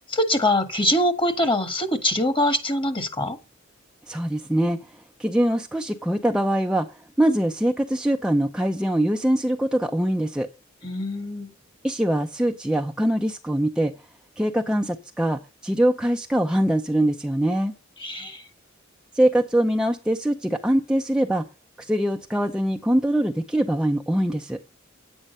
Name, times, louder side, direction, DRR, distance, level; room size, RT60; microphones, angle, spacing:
voice 1, 0.1-3.4 10.8-11.5 18.0-18.4, left 1 dB, 25° left, 1.6 m, -23 dB
voice 2, 4.1-10.5 11.8-13.9 14.4-17.7 19.1-21.4 21.8-24.6, right 1 dB, 5° right, 0.5 m, -23 dB
10.0 x 8.9 x 5.3 m
head